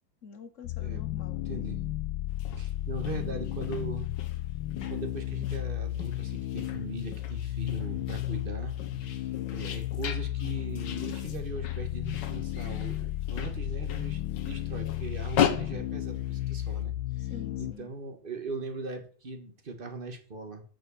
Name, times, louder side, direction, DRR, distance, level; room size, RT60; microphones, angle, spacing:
voice 1, 0.2-1.7 17.2-17.9, left 6 dB, 50° left, 1.2 m, -46 dB
sound 1, 0.6-17.7, left 14 dB, 85° left, 1.6 m, -34 dB
voice 2, 1.5-1.8 2.6-4.1 4.9-8.8 9.5-17.3 17.6-20.6, right 3 dB, 30° right, 1.4 m, -40 dB
sound 2, 2.3-16.8, left 9 dB, 70° left, 1.7 m, -37 dB
sound 3, 4.8-13.7, right 7 dB, 80° right, 1.9 m, -56 dB
6.8 x 5.9 x 7.0 m
omnidirectional pair, 2.1 m